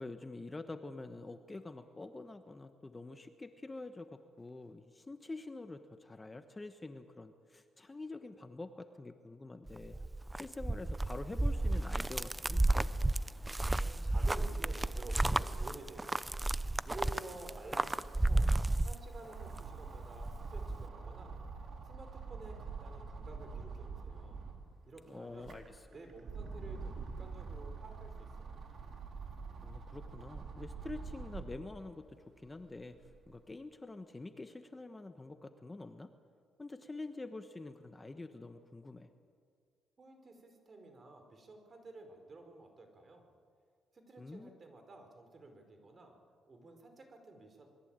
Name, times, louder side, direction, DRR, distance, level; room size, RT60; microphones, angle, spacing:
voice 1, 0.0-10.0 10.3-12.9 25.1-25.9 29.6-33.0 33.3-36.1 36.6-39.1 44.2-44.5, left 2 dB, 20° left, 8 dB, 1.2 m, -46 dB
sound 1, 9.7-19.6 19.9-20.8, right 2 dB, 10° right, 0.6 m, -33 dB
voice 2, 13.8-16.4 16.8-18.5 18.8-21.4 21.8-24.4 24.9-25.6 25.9-28.6 40.0-43.3 43.9-46.2 46.5-47.7, right 2 dB, 35° right, 5 dB, 4.8 m, -51 dB
sound 2, 16.6-16.7 16.9-24.7 25.2-31.7 32.2-33.3, right 4 dB, 55° right, 4.0 m, -46 dB
27.5 x 22.0 x 9.0 m, 2.1 s
cardioid pair, 105°, 0 cm